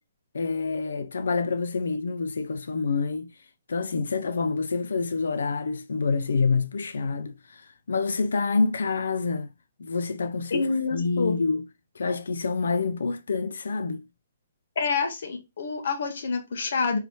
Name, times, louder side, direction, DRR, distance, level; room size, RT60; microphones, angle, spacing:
voice 1, 0.3-3.3 3.7-9.5 9.8-11.7 12.0-14.0, left 4 dB, 85° left, 0.4 m, -27 dB
voice 2, 10.5-11.3 14.8-17.0, left 4 dB, 65° left, 1.2 m, -27 dB
4.5 x 3.2 x 2.8 m
hypercardioid pair, 165°, 0 cm